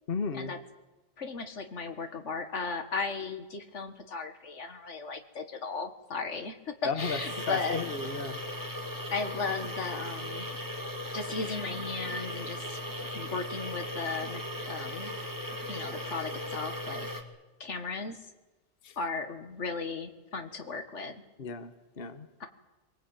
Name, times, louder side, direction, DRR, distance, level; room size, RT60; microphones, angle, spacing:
voice 1, 0.1-0.5 6.8-8.4 18.8-19.0 21.4-22.3, left 5 dB, 55° left, 10 dB, 1.4 m, -34 dB
voice 2, 1.2-7.8 9.1-10.5 11.1-12.8 13.1-15.1 15.7-17.1 17.6-18.2 19.0-21.2 22.4-22.5, left 4 dB, 85° left, 7 dB, 2.0 m, -36 dB
sound 1, 7.0-17.2, left 1 dB, 15° right, 2.2 m, -37 dB
24.5 x 19.0 x 9.0 m, 1.1 s
omnidirectional pair, 1.2 m